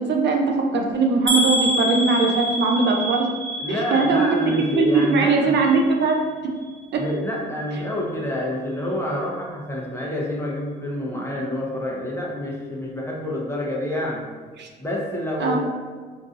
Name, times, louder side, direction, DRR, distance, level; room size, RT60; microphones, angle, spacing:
voice 1, 0.0-3.3 3.7-6.2 14.6-14.7 15.4-15.6, right 4 dB, 60° right, 1 dB, 0.5 m, -20 dB
sound 1, 1.3-5.2 5.5-6.2 6.6-6.7 7.1-7.2, equal, 25° right, 1.0 m, -27 dB
voice 2, 3.6-5.6 7.0-14.3 14.8-15.6, left 1 dB, 15° left, -3 dB, 0.7 m, -27 dB
3.8 x 2.6 x 2.5 m, 1.5 s
cardioid pair, 90°, 20 cm